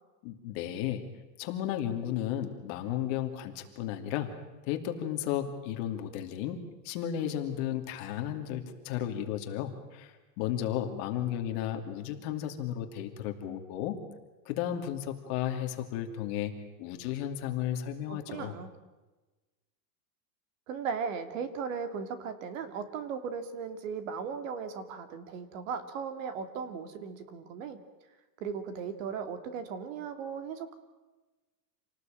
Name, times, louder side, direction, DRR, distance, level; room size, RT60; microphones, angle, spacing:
voice 1, 0.2-1.0 1.4-4.3 4.6-14.0 14.5-16.5 16.8-18.5, left 11 dB, 40° left, 5 dB, 2.7 m, -34 dB
voice 2, 18.1-18.7 20.7-27.8 28.4-30.7, right 6 dB, 50° right, 10 dB, 2.8 m, -37 dB
27.5 x 19.0 x 9.1 m, 1.2 s
supercardioid pair, 180°, 49 cm